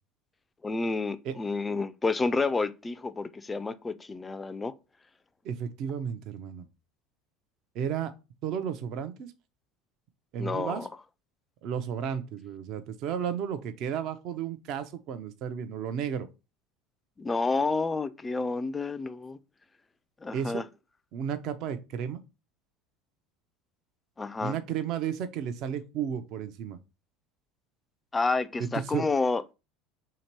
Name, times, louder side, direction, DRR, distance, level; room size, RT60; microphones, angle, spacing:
voice 1, 0.6-4.7 10.4-10.9 17.2-19.4 20.2-20.6 24.2-24.6 28.1-29.5, left 3 dB, 15° left, 0.3 m, -29 dB
voice 2, 5.4-6.7 7.7-8.1 8.4-9.3 10.3-10.9 11.6-16.3 20.3-20.6 21.1-22.2 24.4-26.8 28.9-29.0, right 8 dB, 60° right, 0.5 m, -33 dB
2.9 x 2.8 x 4.4 m
supercardioid pair, 105°, 0 cm